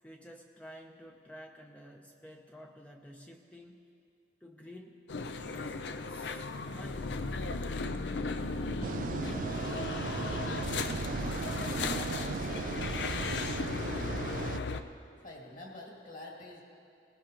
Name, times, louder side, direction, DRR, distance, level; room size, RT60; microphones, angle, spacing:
voice 1, 0.0-3.8 4.4-5.0 5.5-7.7, equal, 10° left, 2 dB, 0.6 m, -51 dB
sound 1, 5.1-14.8, left 3 dB, 85° left, 0.6 m, -36 dB
sound 2, 8.8-14.6, right 4 dB, 50° right, 0.3 m, -36 dB
voice 2, 11.8-12.7 15.2-16.6, left 2 dB, 45° left, -2 dB, 2.3 m, -47 dB
19.0 x 18.0 x 2.9 m, 2.5 s
head